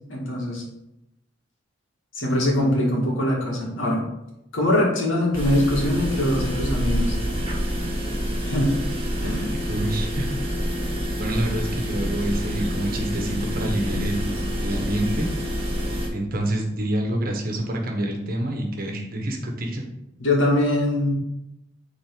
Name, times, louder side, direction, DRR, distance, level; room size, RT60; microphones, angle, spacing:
voice 1, 0.1-0.7 2.1-4.0 4.5-7.1 8.5-8.8 9.2-9.5 20.2-21.1, left 1 dB, 80° left, -2 dB, 2.2 m, -22 dB
sound 1, 5.3-16.1, equal, 30° right, 1.5 m, -27 dB
voice 2, 9.4-10.3 11.2-15.3 16.1-19.8, right 1 dB, 50° right, 2 dB, 1.2 m, -27 dB
8.7 x 4.0 x 3.9 m, 0.87 s
head